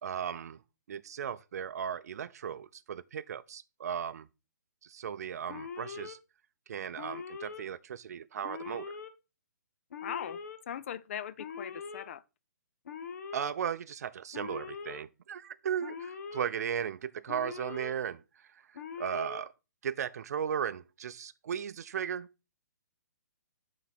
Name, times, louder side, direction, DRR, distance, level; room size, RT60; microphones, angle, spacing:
voice 1, 0.0-0.6 0.9-4.3 4.8-6.2 6.7-8.9 13.3-18.2 19.0-19.5 19.8-22.3, right 8 dB, 60° right, 0.4 m, -36 dB
Alarm, 5.5-6.1 7.0-7.6 8.4-9.1 9.9-10.6 11.4-12.0 12.8-13.5 14.3-15.0 15.8-16.5 17.3-17.9 18.7-19.4, left 6 dB, 60° left, 0.9 m, -42 dB
voice 2, 10.0-10.4 10.7-12.2, left 9 dB, 45° left, 0.4 m, -39 dB
7.5 x 4.0 x 4.1 m
hypercardioid pair, 155°, 10 cm